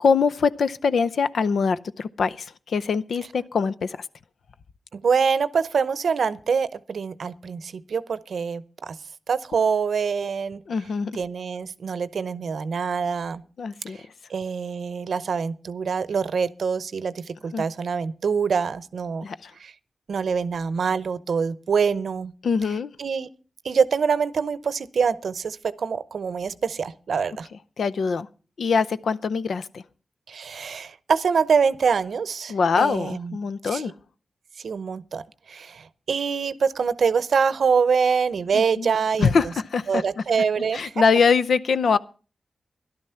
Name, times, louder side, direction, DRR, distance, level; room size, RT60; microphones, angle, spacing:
voice 1, 0.0-4.1 10.7-11.1 13.6-14.0 17.5-17.6 19.2-19.5 22.4-22.9 27.8-28.3 28.6-29.8 32.5-33.9 38.5-38.9 39.2-40.2 40.7-42.0, left 5 dB, 85° left, 0.6 m, -23 dB
voice 2, 4.9-9.0 9.3-10.6 11.2-13.4 14.3-19.3 19.6-19.7 20.1-22.3 23.0-23.3 23.6-27.5 30.3-33.4 33.7-33.8 34.6-39.3 39.9-40.9, right 6 dB, 85° right, 0.7 m, -25 dB
13.5 x 11.5 x 5.7 m
cardioid pair, 50°, 0 cm